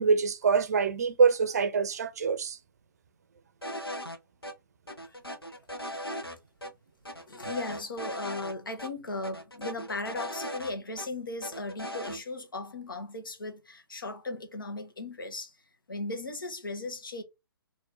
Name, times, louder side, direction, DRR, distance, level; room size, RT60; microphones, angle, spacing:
voice 1, 0.0-2.6, right 5 dB, 45° right, 0.6 m, -25 dB
sound 1, 3.6-4.2 4.4-4.5 4.9-6.4 6.6-6.7 7.0-8.5 8.8-8.9 9.2-11.1 11.4-12.2, equal, 85° left, 0.9 m, -38 dB
voice 2, 7.1-15.6 15.9-17.2, left 2 dB, 65° left, 1.3 m, -37 dB
4.3 x 2.8 x 3.8 m
figure-of-eight pair, 130°, 12 cm